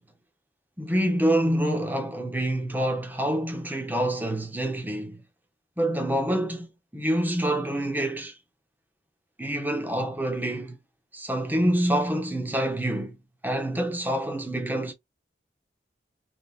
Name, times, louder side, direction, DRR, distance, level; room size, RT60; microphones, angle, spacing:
voice 1, 0.8-5.2 5.8-8.3 9.4-10.8 11.1-13.2 13.4-14.9, right 1 dB, 10° right, 0.9 m, -26 dB
3.5 x 3.3 x 2.4 m
head